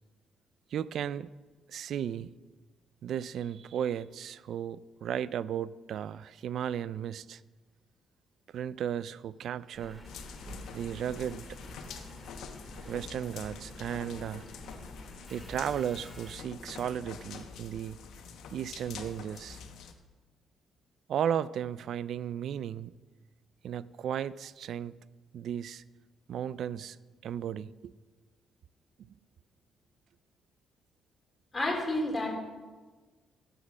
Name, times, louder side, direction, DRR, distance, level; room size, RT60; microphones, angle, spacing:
voice 1, 0.7-1.3 1.7-2.3 3.0-7.4 8.5-10.0 10.7-11.5 12.9-14.4 15.3-18.0 18.5-19.6 21.1-22.9 23.6-25.0 25.3-25.8 26.3-27.0 27.2-27.9, right 9 dB, 70° right, 18 dB, 0.3 m, -35 dB
Engine, 9.7-17.6 18.2-18.3, left 1 dB, 5° left, 1.9 m, -48 dB
sound 1, 10.0-19.9, left 6 dB, 75° left, 1.0 m, -46 dB
voice 2, 31.5-32.4, left 1 dB, 25° left, -1 dB, 3.3 m, -30 dB
11.5 x 7.5 x 6.1 m, 1.3 s
cardioid pair, 90°, 0 cm